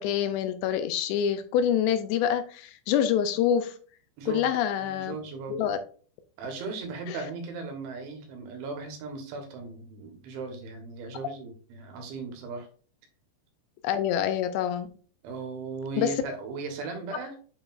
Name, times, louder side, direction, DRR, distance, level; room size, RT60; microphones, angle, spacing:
voice 1, 0.0-3.8 4.3-5.2 5.5-5.8 7.1-7.2 13.8-14.9 16.0-16.1, left 9 dB, 85° left, 9 dB, 2.7 m, -26 dB
voice 2, 4.2-4.5 4.8-5.7 6.4-12.7 15.2-17.4, right 4 dB, 85° right, 4 dB, 3.7 m, -37 dB
8.7 x 4.6 x 2.5 m, 0.41 s
omnidirectional pair, 5.2 m